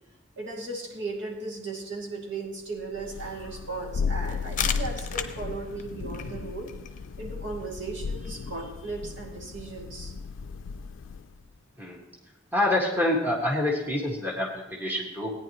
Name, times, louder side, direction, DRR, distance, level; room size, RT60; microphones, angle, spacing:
voice 1, 0.4-6.7 7.2-10.1, right 3 dB, 70° right, -1 dB, 2.6 m, -36 dB
Thunder, 2.9-11.4, left 5 dB, 85° left, 0.4 m, -35 dB
sound 1, 4.2-9.8, left 8 dB, 40° left, 0.7 m, -38 dB
voice 2, 12.5-15.3, left 1 dB, 10° right, -2 dB, 1.8 m, -26 dB
17.5 x 9.8 x 3.0 m, 0.98 s
head